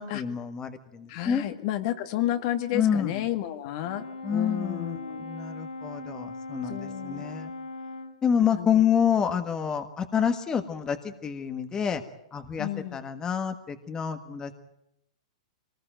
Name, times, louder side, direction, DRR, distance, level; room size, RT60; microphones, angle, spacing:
voice 1, 0.0-1.4 2.7-3.2 4.2-7.5 8.2-12.0 12.3-14.5, left 8 dB, 20° left, 8 dB, 1.5 m, -28 dB
voice 2, 1.1-5.3 6.7-7.3 8.5-8.7 12.6-13.0, left 13 dB, 50° left, 8 dB, 1.9 m, -31 dB
Brass instrument, 3.8-8.2, left 3 dB, 90° left, 1.9 m, -39 dB
23.5 x 20.0 x 9.0 m, 0.81 s
hypercardioid pair, 125°, 3 cm